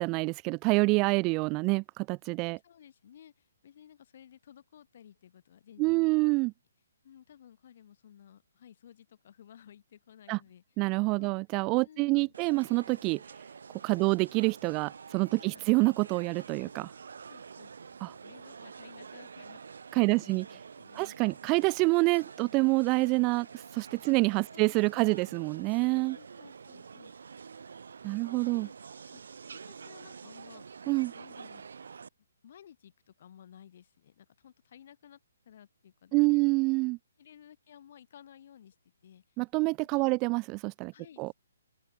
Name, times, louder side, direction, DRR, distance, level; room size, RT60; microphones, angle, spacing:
voice 1, 0.0-2.6 5.8-6.5 10.3-10.4 10.8-13.2 13.8-16.9 18.0-18.1 19.9-20.4 21.0-26.2 28.0-28.7 30.9-31.1 36.1-37.0 39.4-40.9 41.2-41.3, right 26 dB, 25° right, 0.3 m, -27 dB
voice 2, 2.6-6.4 7.0-10.6 11.1-11.4 11.8-12.3 14.0-14.1 15.3-15.8 16.6-16.7 17.3-21.9 24.1-24.2 24.5-25.2 26.1-27.3 27.9-28.2 28.5-28.7 29.1-29.2 29.5-30.7 31.1-31.6 32.4-35.2 35.4-36.5 37.2-38.8 39.0-39.4 39.8-40.2 40.9-41.3, left 9 dB, 45° left, 5.7 m, -56 dB
sound 1, 12.3-32.1, right 6 dB, 60° right, 6.6 m, -48 dB
open air
figure-of-eight pair, 130°, 0 cm